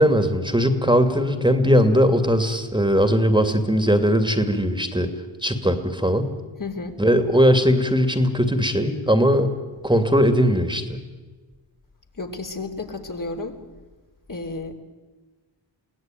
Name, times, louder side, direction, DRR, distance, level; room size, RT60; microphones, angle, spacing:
voice 1, 0.0-5.1 5.4-6.3 7.0-9.5 9.8-11.0, equal, 10° right, 8 dB, 2.6 m, -19 dB
voice 2, 6.6-7.0 12.1-13.6 14.3-14.7, left 3 dB, 40° left, 3 dB, 3.5 m, -32 dB
23.5 x 16.5 x 9.4 m, 1.3 s
supercardioid pair, 45°, 47 cm